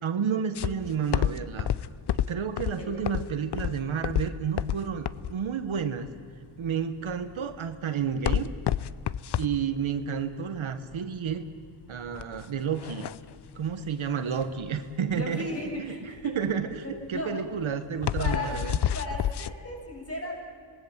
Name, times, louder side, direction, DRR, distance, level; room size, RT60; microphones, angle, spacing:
voice 1, 0.0-1.7 2.1-6.1 6.6-8.5 9.4-11.4 11.9-13.1 13.5-15.5 15.8-16.0 16.2-18.8, right 7 dB, 75° right, 9 dB, 1.3 m, -31 dB
sound 1, 0.5-19.5, left 10 dB, 55° left, 0.6 m, -31 dB
voice 2, 15.1-16.4 16.8-17.4 17.7-17.8 18.2-18.6 18.9-20.4, left 1 dB, 30° left, -1 dB, 7.2 m, -36 dB
26.5 x 19.5 x 7.4 m, 2.2 s
cardioid pair, 80°, 48 cm